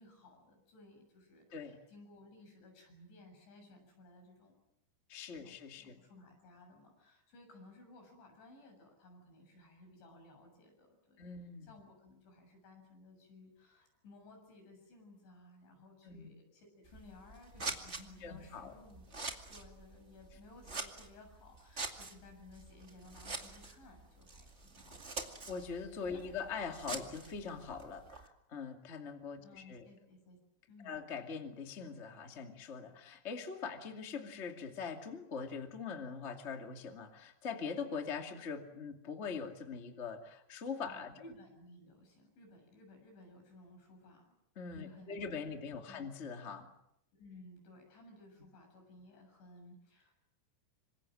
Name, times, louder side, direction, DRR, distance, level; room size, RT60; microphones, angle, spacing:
voice 1, 0.0-4.6 5.3-11.2 11.6-25.2 26.1-26.5 26.9-27.1 29.4-30.4 30.7-31.0 40.8-44.4 44.7-45.6 45.9-46.0 47.1-50.1, left 2 dB, 85° left, 3 dB, 9.7 m, -58 dB
voice 2, 5.1-6.0 11.2-11.7 16.0-16.3 18.2-18.7 25.5-29.9 30.8-41.1 44.6-46.7, left 5 dB, 25° left, 4 dB, 1.6 m, -42 dB
Scissors, 16.8-28.3, right 3 dB, 35° right, 1.1 m, -46 dB
27.0 x 25.5 x 7.6 m, 0.81 s
omnidirectional pair, 5.1 m